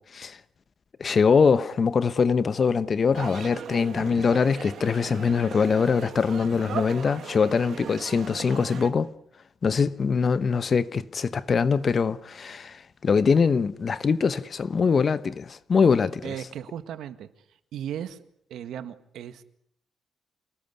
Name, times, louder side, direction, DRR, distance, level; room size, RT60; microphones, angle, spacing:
voice 1, 1.0-9.1 9.6-16.3, left 5 dB, 40° left, 1.0 m, -23 dB
sound 1, 3.1-8.9, right 8 dB, 65° right, 2.1 m, -38 dB
voice 2, 16.2-17.3 17.7-18.2 18.5-19.4, right 10 dB, 85° right, 1.8 m, -36 dB
27.5 x 19.5 x 8.3 m
cardioid pair, 140°, 0 cm